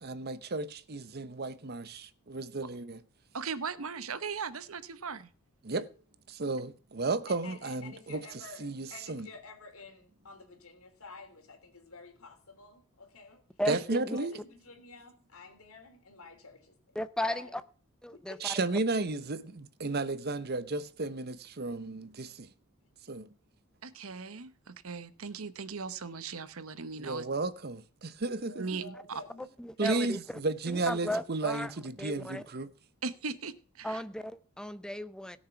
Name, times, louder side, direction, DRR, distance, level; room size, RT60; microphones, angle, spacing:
voice 1, 0.0-3.0 5.6-5.9 6.3-8.2 8.6-9.3 13.7-14.4 18.4-22.5 23.1-23.3 27.0-28.7 29.8-32.7, right 3 dB, 45° right, 0.8 m, -33 dB
voice 2, 3.3-5.3 13.7-13.8 23.8-27.3 28.6-28.8 29.8-30.0 33.0-34.0, right 5 dB, 70° right, 0.9 m, -38 dB
voice 3, 7.3-13.4 14.0-16.8 17.2-17.6 18.1-18.4 28.3-29.5, left 3 dB, 75° left, 3.4 m, -50 dB
voice 4, 13.6-14.2 17.0-17.6 18.0-18.4 29.6-30.2 30.7-31.7 32.0-32.4 33.8-35.4, left 1 dB, 5° left, 0.6 m, -35 dB
17.0 x 6.6 x 5.8 m
head